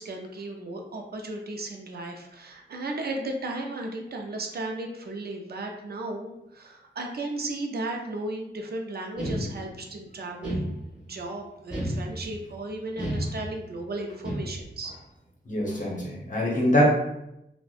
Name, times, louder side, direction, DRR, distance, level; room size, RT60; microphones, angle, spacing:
voice 1, 0.0-10.7 11.1-14.9, right 2 dB, 55° right, 2 dB, 0.4 m, -35 dB
sound 1, 9.2-9.9 10.4-11.2 11.7-12.5 13.0-13.8 14.2-14.8, right 1 dB, 5° right, 1.3 m, -32 dB
voice 2, 15.5-16.9, equal, 45° left, -3 dB, 0.8 m, -23 dB
2.5 x 2.1 x 2.3 m, 0.85 s
cardioid pair, 60°, 19 cm